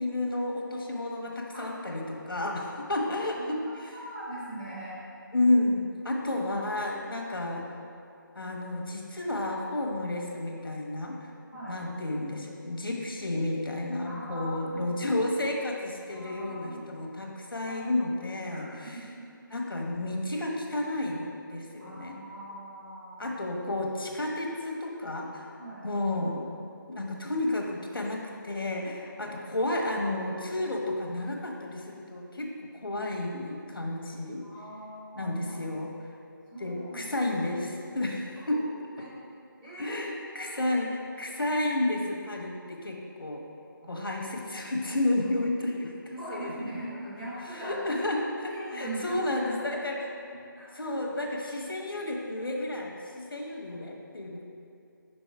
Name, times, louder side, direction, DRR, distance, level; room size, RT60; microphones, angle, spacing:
voice 1, 0.0-4.0 5.3-7.7 8.3-11.2 11.7-19.1 19.5-22.2 23.2-25.5 25.8-26.5 26.9-32.5 32.8-34.4 35.1-35.9 36.6-38.6 39.8-43.4 43.9-45.9 46.3-46.5 47.5-50.2 50.7-54.4, left 1 dB, 85° left, 0 dB, 1.1 m, -31 dB
voice 2, 3.0-3.5 3.9-5.0 11.5-11.8 14.0-15.0 16.1-16.8 17.6-17.7 18.5-19.3 21.8-23.4 25.6-25.9 34.4-35.4 36.5-37.3 38.5-39.1 39.6-40.0 40.4-40.7 43.8-44.1 46.0-47.8 48.5-49.5 50.2-50.9 53.6-53.8, right 1 dB, 10° right, -10 dB, 0.7 m, -41 dB
5.4 x 4.0 x 4.6 m, 2.5 s
figure-of-eight pair, 165°, 12 cm